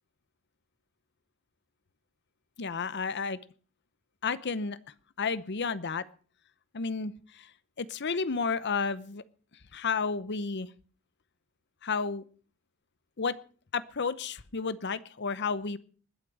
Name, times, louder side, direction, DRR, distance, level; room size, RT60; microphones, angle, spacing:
voice 1, 2.6-3.4 4.2-4.8 5.2-6.0 6.7-7.1 7.8-9.2 9.7-10.7 11.8-12.2 13.2-13.3 13.7-15.8, left 5 dB, 55° left, 16 dB, 0.8 m, -31 dB
20.5 x 8.3 x 6.3 m, 0.41 s
head